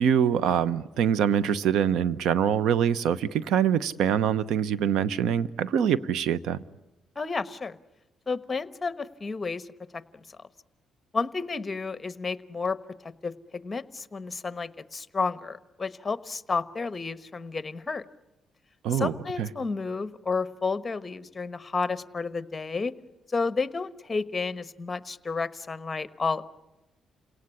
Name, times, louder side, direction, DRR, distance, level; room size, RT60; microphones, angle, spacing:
voice 1, 0.0-6.6 18.8-19.5, right 8 dB, 80° right, 17 dB, 0.9 m, -24 dB
voice 2, 7.1-7.8 8.3-9.7 9.9-10.0 11.1-12.8 13.0-18.0 18.9-22.9 23.3-26.4, left 4 dB, 25° left, 13 dB, 1.2 m, -31 dB
29.0 x 18.0 x 9.9 m, 1.0 s
cardioid pair, 90°, 0 cm